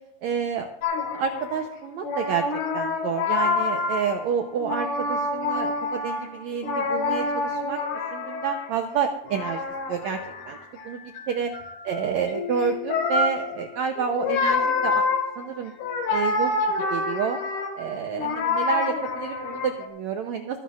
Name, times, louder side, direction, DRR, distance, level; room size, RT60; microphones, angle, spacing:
voice 1, 0.2-0.7 1.1-2.4 2.7-7.8 8.1-9.6 9.9-10.2 10.5-10.6 10.8-11.0 11.3-11.5 11.8-15.0 15.4-15.7 16.1-16.5 16.9-17.4 17.8-20.6, right 7 dB, 80° right, 5 dB, 1.6 m, -29 dB
sound 1, 0.8-1.7 2.0-4.3 4.6-8.9 9.2-19.9, left 3 dB, 60° left, 3.1 m, -27 dB
24.5 x 10.5 x 2.4 m, 0.76 s
omnidirectional pair, 4.2 m